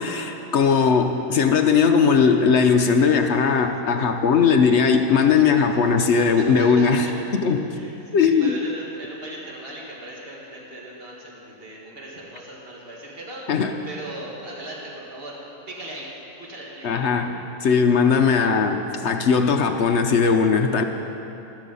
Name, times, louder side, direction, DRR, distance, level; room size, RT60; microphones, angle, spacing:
voice 1, 0.0-7.1 7.4-7.8 8.1-8.5 13.5-13.7 16.8-20.8, left 5 dB, 60° left, 6 dB, 0.8 m, -19 dB
voice 2, 6.2-7.2 7.7-15.4 15.7-16.1 16.4-17.0, right 1 dB, 35° right, -3 dB, 2.3 m, -38 dB
13.0 x 13.0 x 5.4 m, 2.9 s
omnidirectional pair, 1.7 m